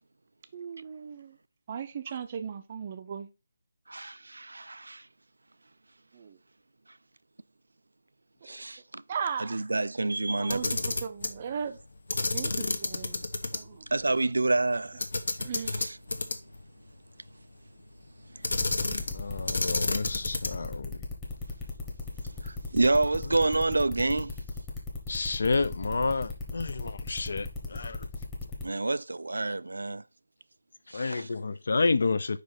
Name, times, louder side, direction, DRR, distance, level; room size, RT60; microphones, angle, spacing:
voice 1, 0.5-1.4 1.7-3.3 6.1-6.4 8.5-8.6 9.1-9.6 10.4-11.8 12.3-13.3 13.5-13.9 15.4-15.7, right 7 dB, 25° right, 0.5 m, -37 dB
voice 2, 3.9-5.0 8.5-9.0 9.4-10.7 13.9-15.1 15.7-16.0 22.4-24.3 28.6-30.0 30.9-31.3, right 2 dB, 90° right, 0.3 m, -28 dB
Camera, 10.4-11.4 12.1-13.6 13.9-14.0 15.0-16.6 18.4-19.2 19.5-20.7, left 2 dB, 70° left, 1.1 m, -30 dB
sound 1, 18.5-28.6, left 3 dB, 10° left, 1.1 m, -37 dB
voice 3, 19.1-21.0 25.1-28.1 30.9-32.4, left 3 dB, 55° left, 0.5 m, -30 dB
4.9 x 4.9 x 3.9 m
figure-of-eight pair, 170°, 0 cm